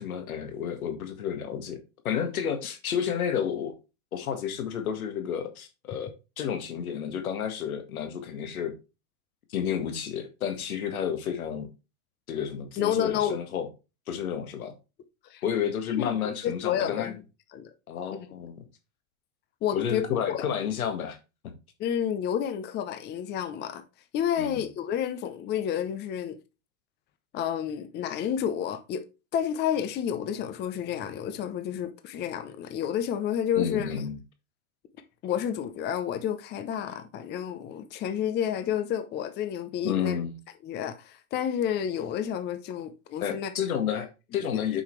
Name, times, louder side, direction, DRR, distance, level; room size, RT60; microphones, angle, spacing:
voice 1, 0.0-1.8 2.0-3.7 4.1-8.7 9.5-11.7 12.3-13.7 14.1-14.7 15.4-17.1 17.9-18.7 19.7-21.2 21.4-21.5 24.4-24.7 33.6-34.2 39.8-40.3 43.2-44.8, left 8 dB, 90° left, 1.9 m, -31 dB
voice 2, 12.8-13.4 15.3-15.4 15.9-16.2 16.4-17.1 17.5-17.7 18.1-18.3 19.6-20.0 20.3-20.4 21.8-23.8 24.1-26.4 27.3-29.0 29.3-33.9 35.2-40.2 40.6-43.5 44.5-44.6, left 9 dB, 25° left, 0.7 m, -30 dB
7.3 x 5.7 x 3.2 m
supercardioid pair, 135°, 42 cm